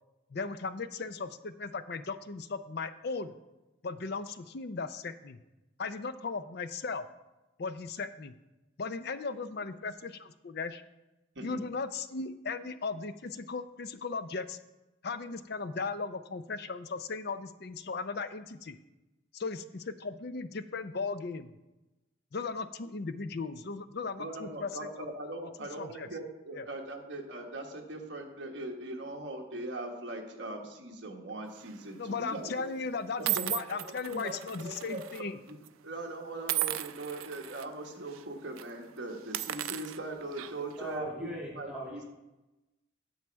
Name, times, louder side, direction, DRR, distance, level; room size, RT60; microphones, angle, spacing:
voice 1, 0.3-3.3 3.8-5.4 5.8-7.0 7.6-8.3 8.8-10.8 11.4-14.6 15.0-18.8 19.3-21.5 22.3-24.9 25.8-26.1 26.5-26.7 31.9-35.4, left 4 dB, 50° left, 12 dB, 0.5 m, -37 dB
voice 2, 24.2-32.7 33.2-35.6 35.8-42.0, right 2 dB, 55° right, 1 dB, 1.4 m, -41 dB
sound 1, 31.6-31.9 32.6-32.7 33.3-35.2 35.5-35.7 36.5-37.6 38.1-38.2 38.5-38.7 39.2-40.8, right 14 dB, 85° right, 0.4 m, -35 dB
voice 3, 40.8-42.0, right 1 dB, 5° right, -5 dB, 1.7 m, -39 dB
9.4 x 7.4 x 4.5 m, 1.0 s
head